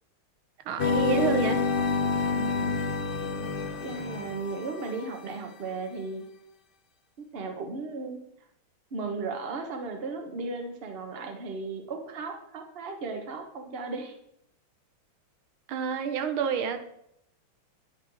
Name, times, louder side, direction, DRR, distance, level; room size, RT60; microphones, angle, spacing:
voice 1, 0.6-1.6 15.7-16.8, right 7 dB, 85° right, 8 dB, 1.8 m, -28 dB
sound 1, 0.8-5.0, left 4 dB, 75° left, 0.4 m, -28 dB
voice 2, 2.3-2.7 3.8-6.2 7.2-8.2 8.9-14.1, right 3 dB, 35° right, 4 dB, 1.1 m, -36 dB
9.5 x 4.8 x 6.2 m, 0.75 s
omnidirectional pair, 2.2 m